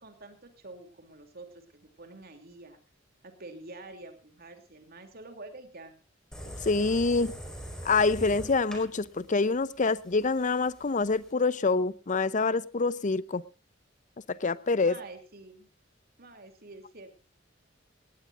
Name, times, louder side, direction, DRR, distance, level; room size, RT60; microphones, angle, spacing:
voice 1, 0.0-2.8 3.2-6.0 14.8-15.7 16.2-17.1, right 2 dB, 55° right, 2.9 m, -47 dB
sound 1, 6.3-11.3, equal, 5° left, 4.8 m, -43 dB
voice 2, 6.6-7.3 7.8-13.4 14.3-15.0, left 3 dB, 40° left, 0.7 m, -26 dB
18.5 x 18.0 x 2.6 m
head